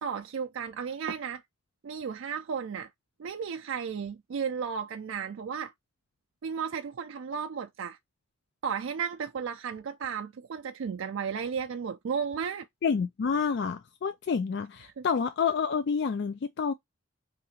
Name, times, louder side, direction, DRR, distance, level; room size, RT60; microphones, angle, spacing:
voice 1, 0.0-1.4 1.8-2.9 3.2-5.7 6.4-8.0 8.6-12.7 15.0-15.1, right 6 dB, 75° right, 0.4 m, -34 dB
voice 2, 12.8-16.7, left 6 dB, 55° left, 0.3 m, -28 dB
2.8 x 2.6 x 4.0 m
head